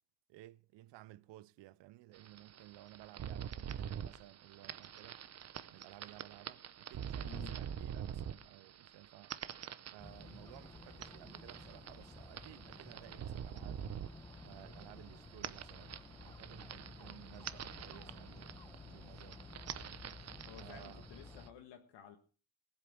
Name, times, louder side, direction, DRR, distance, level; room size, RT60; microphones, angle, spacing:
voice 1, 0.3-5.2 5.7-9.3 9.9-13.9 14.4-19.5 20.6-21.0, right 16 dB, 70° right, 0.7 m, -56 dB
sound 1, 2.1-21.5, right 9 dB, 35° right, 0.8 m, -47 dB
voice 2, 7.2-7.6 20.4-22.2, left 8 dB, 65° left, 1.7 m, -53 dB
Dog, 10.0-21.5, left 3 dB, 10° left, 0.9 m, -53 dB
18.5 x 8.1 x 6.1 m
cardioid pair, 140°, 45 cm